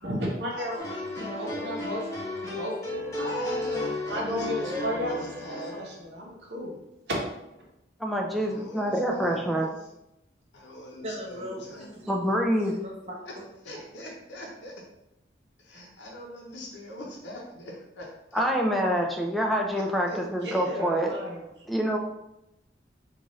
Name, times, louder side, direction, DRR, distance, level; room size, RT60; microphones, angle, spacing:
voice 1, 0.0-0.7 1.2-2.0 2.5-5.2 5.5-6.7 20.4-21.4, equal, 70° right, -2 dB, 0.9 m, -34 dB
voice 2, 0.5-1.8 3.2-5.8 8.3-9.7 10.5-12.1 13.3-13.4 13.6-14.7 15.6-18.5 19.8-20.2, left 1 dB, 75° left, 0 dB, 0.8 m, -41 dB
sound 1, 0.8-6.0, left 1 dB, 15° left, 0.8 m, -34 dB
voice 3, 8.0-9.7 12.1-12.7 18.3-21.1 21.7-22.0, equal, ahead, 0 dB, 0.3 m, -26 dB
voice 4, 11.0-12.3 12.6-13.8, equal, 35° right, -3 dB, 0.8 m, -40 dB
3.9 x 2.4 x 3.1 m, 0.88 s
head